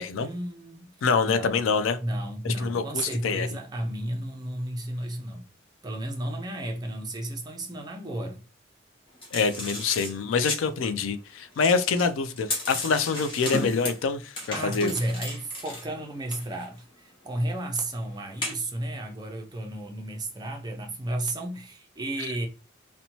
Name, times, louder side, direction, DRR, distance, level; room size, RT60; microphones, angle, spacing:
voice 1, 0.2-0.9 1.2-1.6 2.0-5.4 5.8-8.4 14.5-22.5, right 1 dB, 20° right, 0.5 m, -33 dB
voice 2, 1.0-2.0 2.4-3.5 9.3-14.9, left 5 dB, 85° left, 0.4 m, -26 dB
sound 1, 9.2-10.6 11.5-14.0 14.4-15.9 16.3-16.7 17.4-17.6 18.4-18.5, left 1 dB, 25° left, 0.8 m, -34 dB
2.7 x 2.1 x 2.9 m
head